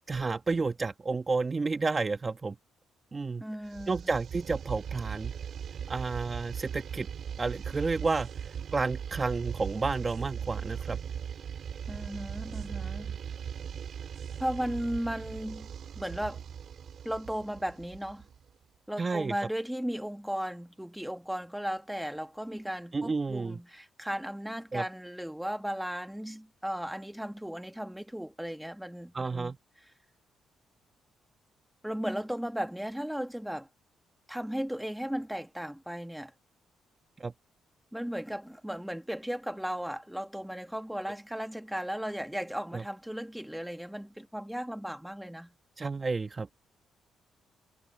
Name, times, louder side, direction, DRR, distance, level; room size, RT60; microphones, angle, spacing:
voice 1, 0.1-2.5 3.1-3.4 3.9-5.3 5.9-7.1 7.4-8.3 8.7-11.0 19.0-19.3 22.9-23.6 24.7-24.8 29.1-29.6 37.2-37.3 42.7-42.8 45.8-46.5, right 4 dB, 30° right, 1.3 m, -31 dB
voice 2, 3.4-4.1 11.9-13.2 14.4-16.4 17.0-18.2 18.9-29.5 29.8-29.9 31.8-33.7 34.3-36.3 37.9-45.5, equal, 5° right, 1.9 m, -36 dB
sound 1, 3.7-18.5, right 8 dB, 60° right, 4.6 m, -39 dB
cardioid pair, 90°, 0 cm